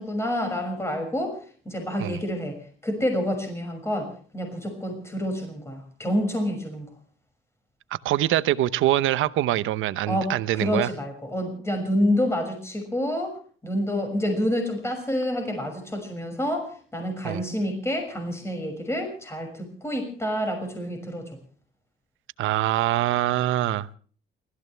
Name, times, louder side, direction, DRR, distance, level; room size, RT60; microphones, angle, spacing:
voice 1, 0.0-1.4 1.6-2.6 2.8-6.9 10.1-13.4 13.6-21.3, equal, 15° left, 4 dB, 6.3 m, -28 dB
voice 2, 7.9-10.9 17.2-17.4 22.4-23.9, right 14 dB, 85° right, 15 dB, 0.9 m, -24 dB
29.0 x 14.5 x 3.4 m, 0.44 s
cardioid pair, 90°, 20 cm